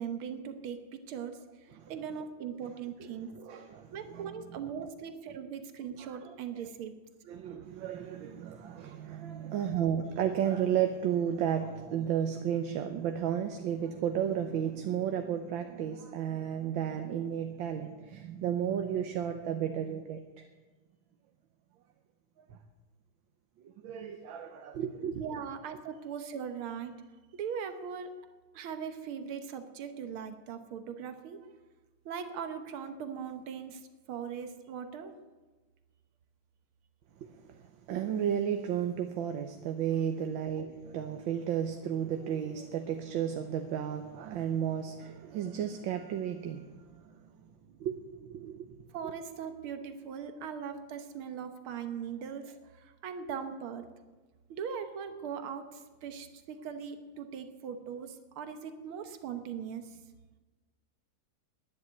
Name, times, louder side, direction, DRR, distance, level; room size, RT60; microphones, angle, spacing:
voice 1, 0.0-3.3 3.9-6.9 25.2-27.0 27.3-28.1 28.5-31.5 32.1-35.1 48.9-53.9 54.5-60.0, right 7 dB, 90° right, 8 dB, 1.9 m, -40 dB
voice 2, 3.0-4.9 6.0-6.3 7.3-20.5 22.5-22.6 23.6-25.2 37.2-47.3 47.8-48.8 49.0-49.1, right 9 dB, 70° right, 6 dB, 1.6 m, -33 dB
11.5 x 10.5 x 9.5 m, 1.3 s
omnidirectional pair, 2.3 m